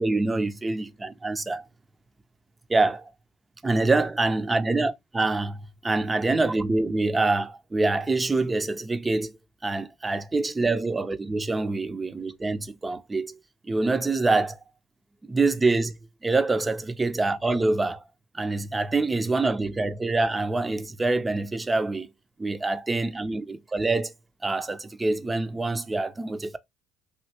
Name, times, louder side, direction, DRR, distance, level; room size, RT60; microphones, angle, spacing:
voice 1, 0.0-1.6 2.7-3.1 3.6-9.3 9.6-13.4 13.7-14.6 15.2-16.0 16.2-18.0 18.3-22.1 22.4-24.1 24.4-26.6, right 3 dB, 20° right, 0.5 m, -25 dB
3.0 x 2.8 x 2.8 m
hypercardioid pair, 60°, 0 cm